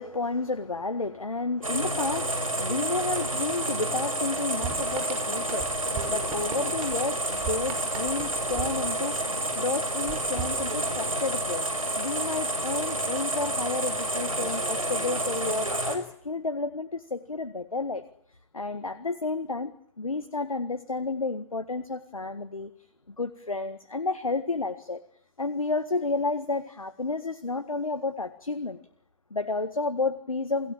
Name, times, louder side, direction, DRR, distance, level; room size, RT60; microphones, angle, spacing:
voice 1, 0.0-18.0 18.5-22.7 23.2-25.0 25.4-28.8 29.3-30.7, left 3 dB, 85° left, 11 dB, 1.7 m, -31 dB
sound 1, 1.6-16.0, right 1 dB, 90° right, 6.0 m, -29 dB
sound 2, 4.6-9.5 10.0-11.3, right 8 dB, 30° right, 6.5 m, -40 dB
29.5 x 19.0 x 8.9 m, 0.68 s
figure-of-eight pair, 115°, 17 cm